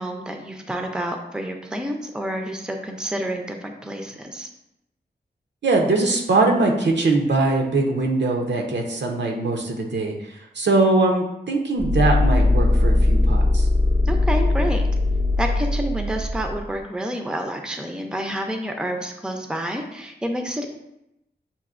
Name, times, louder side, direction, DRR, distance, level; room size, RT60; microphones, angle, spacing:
voice 1, 0.0-4.5 14.1-14.8 15.4-20.7, right 1 dB, 5° right, 4 dB, 0.5 m, -29 dB
voice 2, 5.6-13.7, right 2 dB, 80° right, 1 dB, 0.7 m, -21 dB
sound 1, 11.8-16.7, left 2 dB, 50° left, 0.6 m, -20 dB
6.9 x 2.6 x 2.5 m, 0.86 s
wide cardioid pair, 100°, 18 cm